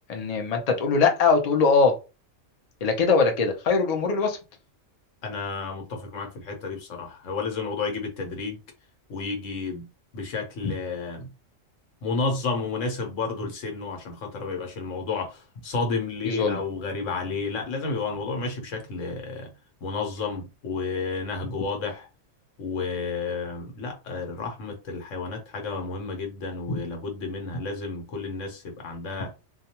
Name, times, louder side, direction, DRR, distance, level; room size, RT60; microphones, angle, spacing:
voice 1, 0.1-2.0 2.8-4.4 10.6-10.7 16.2-16.6 26.7-26.8, left 4 dB, 45° left, 0.5 m, -22 dB
voice 2, 5.2-8.6 9.1-9.9 10.1-11.3 12.0-19.5 19.8-22.1 22.6-29.3, left 4 dB, 85° left, 1.2 m, -31 dB
2.3 x 2.2 x 2.8 m
omnidirectional pair, 1.3 m